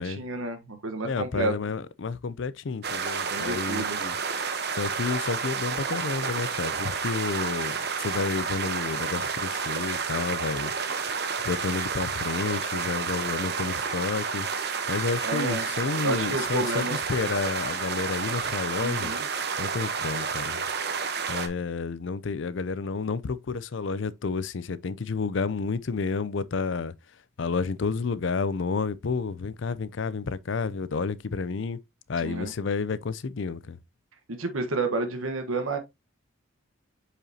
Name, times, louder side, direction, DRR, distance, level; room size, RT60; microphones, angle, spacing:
voice 1, 0.0-1.5 3.3-4.0 15.2-15.7 16.0-17.0 18.8-19.3 32.2-32.5 34.3-35.8, right 2 dB, 85° right, 1.2 m, -30 dB
voice 2, 1.0-4.2 4.8-10.7 11.4-14.5 14.9-19.1 19.6-20.6 21.3-26.9 27.4-31.8 32.1-33.8, left 4 dB, 65° left, 0.5 m, -30 dB
sound 1, 2.8-21.5, right 5 dB, 50° right, 1.0 m, -30 dB
7.7 x 4.9 x 2.8 m
head